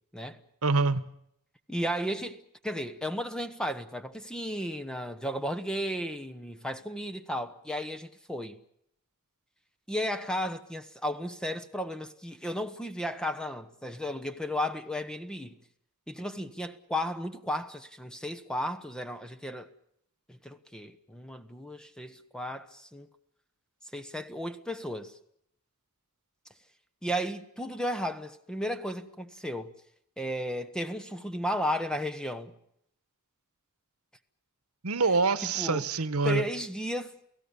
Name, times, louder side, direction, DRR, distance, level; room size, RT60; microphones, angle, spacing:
voice 1, 0.6-1.0 34.8-36.4, right 4 dB, 80° right, 1.2 m, -25 dB
voice 2, 1.7-2.4 2.6-8.6 9.9-15.6 16.1-19.7 20.3-23.1 23.9-25.1 27.0-29.7 30.2-32.5 35.5-35.8 36.2-37.1, equal, 5° left, 1.1 m, -34 dB
30.0 x 17.0 x 7.1 m
head